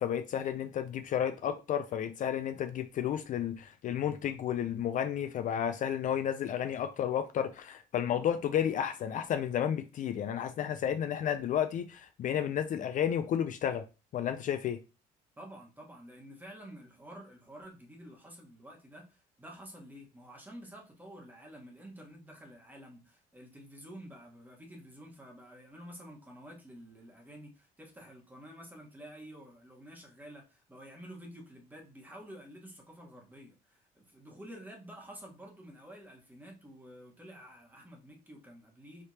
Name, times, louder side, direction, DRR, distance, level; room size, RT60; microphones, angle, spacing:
voice 1, 0.0-13.8 14.1-14.8, left 9 dB, 50° left, 0.4 m, -32 dB
voice 2, 15.4-39.0, equal, 10° right, 1.3 m, -50 dB
4.9 x 3.2 x 2.8 m
cardioid pair, 110°, 17 cm